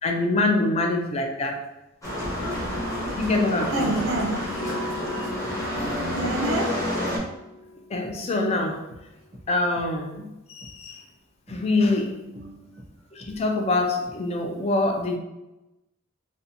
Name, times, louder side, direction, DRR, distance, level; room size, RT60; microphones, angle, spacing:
voice 1, 0.0-1.6 3.2-4.0 5.7-6.1 7.9-8.9 9.5-11.0 11.5-12.2 13.1-15.2, left 2 dB, 30° left, 0.3 m, -25 dB
sound 1, 2.0-7.2, left 1 dB, 15° left, 0.7 m, -29 dB
sound 2, 3.7-3.8 4.6-4.7 5.4-5.6 5.9-6.4 7.2-7.3 8.0-8.2 8.9-9.0 9.3-9.5 9.7-9.9 10.6-10.7 11.5-11.6 12.3-12.5 12.8-12.9 13.2-13.3 14.1-14.2, equal, 25° right, 0.5 m, -45 dB
voice 2, 3.7-5.0 6.2-6.9 12.3-12.8, right 2 dB, 75° right, 0.5 m, -29 dB
Electric guitar / Strum, 4.4-9.8, left 1 dB, 65° left, 1.0 m, -40 dB
2.6 x 2.1 x 2.7 m
head